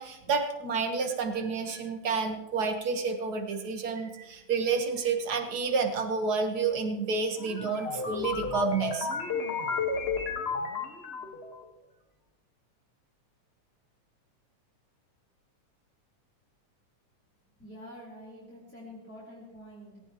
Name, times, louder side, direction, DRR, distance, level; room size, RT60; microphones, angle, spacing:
voice 1, 0.0-9.1, right 5 dB, 50° right, 5 dB, 1.2 m, -30 dB
sound 1, 7.4-11.6, left 4 dB, 35° left, 1.0 m, -32 dB
voice 2, 17.6-20.0, equal, 5° left, -7 dB, 3.7 m, -47 dB
19.5 x 17.5 x 3.0 m, 1.0 s
omnidirectional pair, 3.5 m